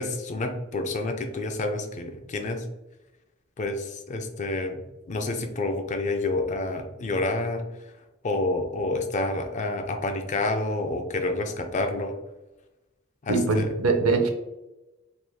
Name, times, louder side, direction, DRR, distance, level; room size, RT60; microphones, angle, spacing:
voice 1, 0.0-2.6 3.6-4.8 5.1-7.6 8.2-12.1 13.2-13.7, left 2 dB, 35° left, 6 dB, 0.4 m, -28 dB
voice 2, 13.3-14.3, right 3 dB, 90° right, 5 dB, 0.5 m, -22 dB
3.4 x 3.0 x 2.2 m, 1.0 s
head